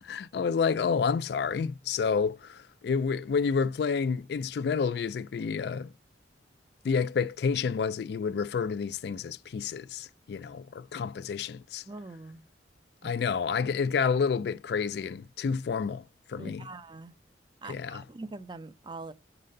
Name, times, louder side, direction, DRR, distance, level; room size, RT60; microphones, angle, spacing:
voice 1, 0.0-5.9 6.8-11.8 13.0-16.0 16.3-16.7 17.7-18.0, left 5 dB, 60° left, 0.3 m, -29 dB
voice 2, 11.9-12.4 13.0-13.1 16.4-17.1 17.6-19.1, right 3 dB, 25° right, 0.4 m, -43 dB
7.4 x 4.0 x 6.4 m
head